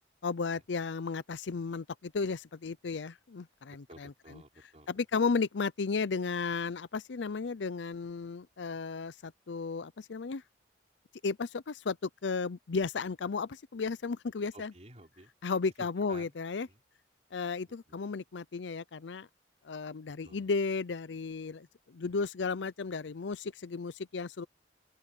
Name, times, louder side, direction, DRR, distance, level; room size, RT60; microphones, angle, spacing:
voice 1, 0.2-4.4 4.9-10.4 11.2-14.7 15.4-16.7 17.3-19.3 19.6-24.5, left 4 dB, 85° left, 0.6 m, -34 dB
voice 2, 3.9-4.9 5.1-5.2 14.5-15.3 15.8-16.3 16.7-16.8 17.9-18.0 20.2-20.5, right 1 dB, 40° right, 3.9 m, -52 dB
open air
head